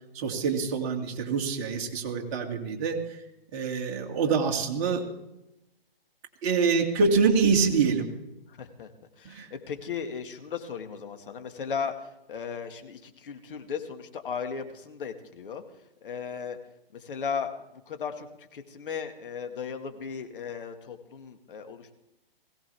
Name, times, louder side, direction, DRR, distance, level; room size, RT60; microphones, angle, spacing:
voice 1, 0.1-3.2 3.5-5.1 6.4-8.1 9.2-9.5, right 5 dB, 30° right, 1 dB, 2.4 m, -25 dB
voice 2, 8.5-8.9 9.2-15.6 16.0-16.6 16.9-17.5 17.9-21.9, left 6 dB, 60° left, 6 dB, 2.1 m, -36 dB
21.0 x 17.0 x 3.5 m, 0.89 s
hypercardioid pair, 140°, 30 cm